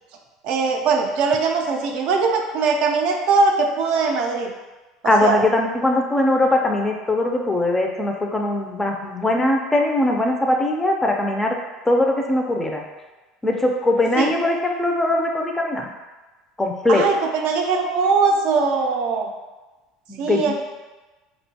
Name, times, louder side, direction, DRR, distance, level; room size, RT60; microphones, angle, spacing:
voice 1, 0.4-4.5 5.0-5.4 14.2-14.3 16.9-19.3 20.2-20.5, right 4 dB, 60° right, 2 dB, 0.4 m, -21 dB
voice 2, 5.0-11.6 11.9-12.8 13.4-15.9 16.6-17.0 20.1-20.5, left 1 dB, 15° left, 1 dB, 0.4 m, -20 dB
2.8 x 2.1 x 2.7 m, 1.2 s
supercardioid pair, 100°, 2 cm